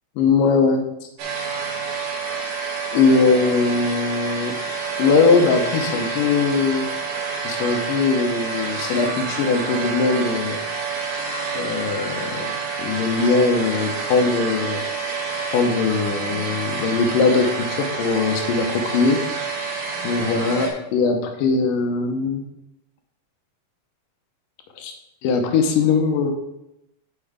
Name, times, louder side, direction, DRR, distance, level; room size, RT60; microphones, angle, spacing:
voice 1, 0.2-0.8 2.9-4.6 5.0-6.9 7.4-10.6 11.5-12.5 12.8-14.8 15.5-19.2 19.6-22.4 24.8-24.9 25.2-26.3, left 4 dB, 85° left, 4 dB, 2.6 m, -20 dB
sound 1, 1.2-20.7, right 4 dB, 75° right, 2.6 m, -28 dB
6.9 x 5.6 x 5.0 m, 0.85 s
omnidirectional pair, 3.8 m